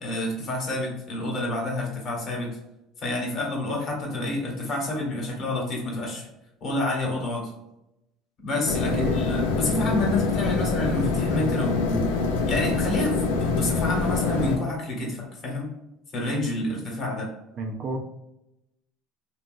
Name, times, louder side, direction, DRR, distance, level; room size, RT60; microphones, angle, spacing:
voice 1, 0.0-2.5 3.0-6.2 6.6-7.5 8.4-12.1 12.5-15.7 16.1-17.3, left 2 dB, 45° left, -1 dB, 1.1 m, -28 dB
sound 1, 8.6-14.6, left 4 dB, 85° left, 0.4 m, -25 dB
voice 2, 17.5-18.0, right 3 dB, 45° right, 3 dB, 0.5 m, -31 dB
2.8 x 2.3 x 2.5 m, 0.88 s
supercardioid pair, 105°, 0 cm